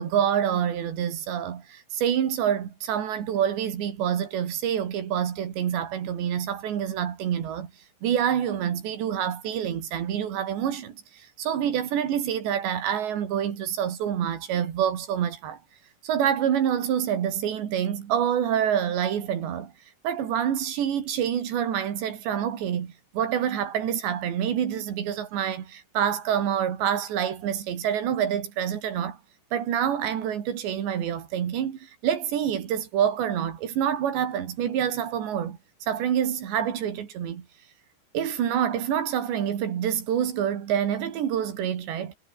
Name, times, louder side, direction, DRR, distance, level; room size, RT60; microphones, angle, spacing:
voice 1, 0.0-7.7 8.0-15.6 16.0-19.7 20.0-29.2 29.5-35.6 35.9-37.5 38.1-42.2, right 9 dB, 85° right, 5.0 m, -27 dB
omnidirectional pair, 4.9 m